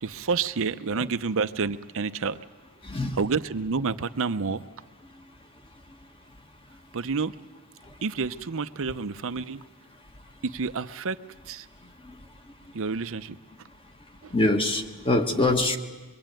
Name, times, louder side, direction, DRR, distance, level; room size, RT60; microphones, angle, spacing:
voice 1, 0.0-2.4 3.1-4.6 6.9-7.3 8.0-9.6 10.4-11.2 11.5-11.7 12.7-13.4 14.2-14.3, right 4 dB, 65° right, 0.7 m, -29 dB
voice 2, 2.9-3.2 14.3-15.8, left 2 dB, 25° left, 1.6 m, -24 dB
23.5 x 23.5 x 9.1 m
head